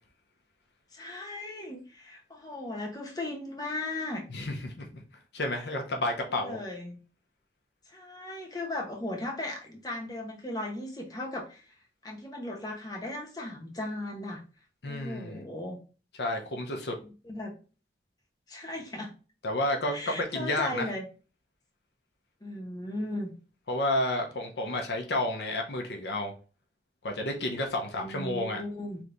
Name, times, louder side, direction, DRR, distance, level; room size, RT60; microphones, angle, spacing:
voice 1, 0.9-4.2 6.3-7.0 7.9-11.7 12.0-14.4 14.9-15.8 17.2-17.5 18.5-19.1 19.9-21.0 22.4-23.3 28.0-29.0, left 1 dB, 20° left, 0 dB, 1.0 m, -37 dB
voice 2, 4.3-5.0 5.3-6.6 14.8-15.4 16.2-17.0 19.4-20.9 23.7-26.3 27.0-28.6, left 1 dB, 70° left, 2 dB, 0.8 m, -31 dB
3.4 x 3.2 x 3.9 m, 0.35 s
head